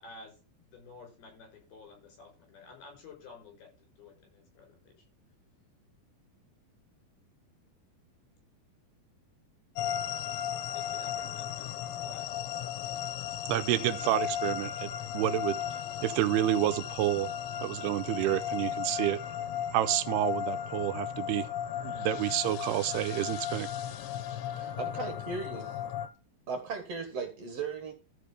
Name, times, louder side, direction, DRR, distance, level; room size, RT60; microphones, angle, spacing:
voice 1, 0.0-5.0 10.7-12.3 24.9-25.3, left 4 dB, 60° left, 7.5 m, -52 dB
sound 1, 9.8-26.1, left 9 dB, 90° left, 3.5 m, -35 dB
voice 2, 13.5-15.6 16.0-17.3 17.6-19.2 19.7-21.5 21.8-23.7, right 13 dB, 80° right, 2.5 m, -29 dB
voice 3, 24.6-25.8 26.5-27.9, right 5 dB, 50° right, 2.0 m, -37 dB
13.5 x 5.5 x 5.0 m
omnidirectional pair, 5.0 m